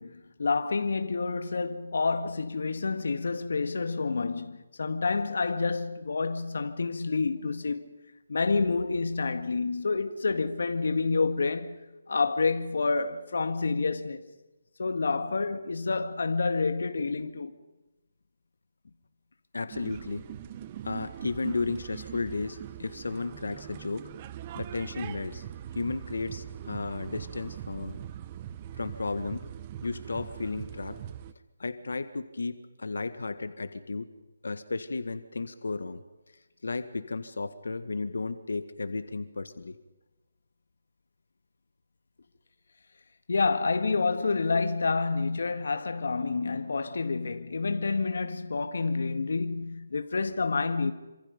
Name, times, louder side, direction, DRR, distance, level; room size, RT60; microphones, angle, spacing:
voice 1, 0.0-7.9 8.3-11.8 12.1-14.2 14.8-17.5 19.6-19.7 43.3-50.9, left 4 dB, 65° left, 1.8 m, -28 dB
voice 2, 19.5-20.2 20.8-24.0 24.5-25.4 25.7-28.0 28.7-29.5 29.8-31.0 31.6-34.1 34.4-36.0 36.6-39.8, left 3 dB, 85° left, 1.7 m, -34 dB
sound 1, 19.7-31.3, right 11 dB, 20° right, 0.8 m, -41 dB
27.5 x 26.5 x 5.3 m
hypercardioid pair, 170°, 0 cm